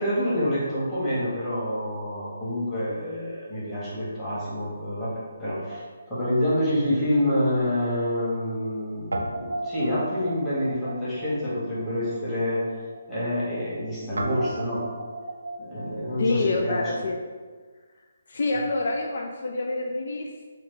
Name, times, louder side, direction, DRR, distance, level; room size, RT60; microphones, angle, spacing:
voice 1, 0.0-5.8 6.1-12.6 13.1-14.9 15.6-16.8, left 1 dB, 10° left, -12 dB, 1.2 m, -27 dB
Guitar, 5.5-7.9 8.1-8.2 9.1-17.0, right 2 dB, 85° right, 0.3 m, -37 dB
voice 2, 16.2-17.2 18.3-20.5, left 2 dB, 60° left, 2 dB, 0.3 m, -27 dB
3.0 x 2.2 x 3.7 m, 1.5 s
hypercardioid pair, 150°, 0 cm